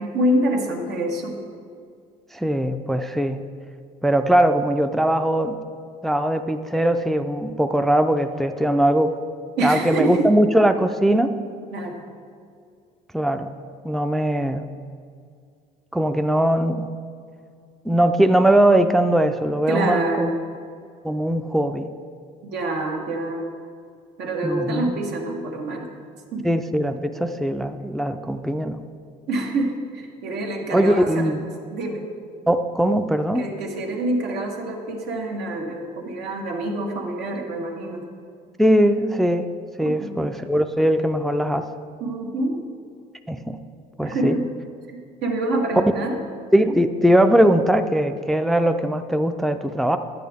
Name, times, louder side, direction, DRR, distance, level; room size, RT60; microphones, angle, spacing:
voice 1, 0.0-1.4 9.6-10.3 11.7-12.0 19.7-20.3 22.4-23.5 24.2-25.9 26.3-26.5 29.3-31.3 31.7-32.0 33.3-38.0 39.8-40.1 42.0-42.6 44.0-44.5 44.9-46.2, right 1 dB, 85° right, 1 dB, 1.4 m, -26 dB
voice 2, 2.3-3.4 4.0-5.6 6.0-9.1 9.6-11.4 13.1-13.5 13.8-14.7 15.9-16.9 17.8-20.3 21.0-21.9 24.4-25.0 26.4-28.8 30.7-31.5 32.5-33.4 38.6-39.5 39.8-41.7 43.3-43.6 44.0-44.4 46.5-50.0, right 1 dB, ahead, 8 dB, 0.3 m, -20 dB
10.0 x 8.5 x 3.5 m, 2.3 s
cardioid pair, 110°, 17 cm